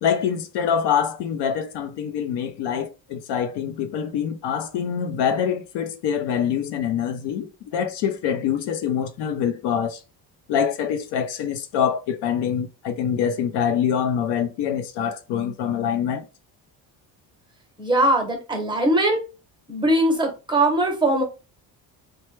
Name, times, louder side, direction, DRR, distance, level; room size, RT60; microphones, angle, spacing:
voice 1, 0.0-10.0 10.5-16.3, left 8 dB, 75° left, 0.6 m, -25 dB
voice 2, 17.8-19.2 19.7-21.2, right 1 dB, 10° right, 0.8 m, -20 dB
3.2 x 2.1 x 3.1 m
cardioid pair, 135°, 42 cm